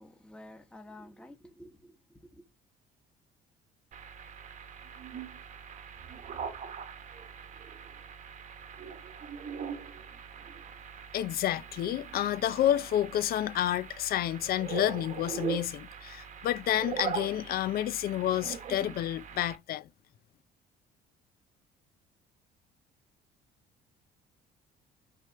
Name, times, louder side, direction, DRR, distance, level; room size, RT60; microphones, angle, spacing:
voice 1, 0.0-2.5, left 1 dB, 5° left, 1.2 m, -51 dB
sound 1, 3.9-19.6, right 7 dB, 45° right, 1.1 m, -41 dB
voice 2, 11.1-19.9, left 12 dB, 60° left, 0.6 m, -30 dB
6.4 x 3.5 x 5.5 m
cardioid pair, 110°, 17 cm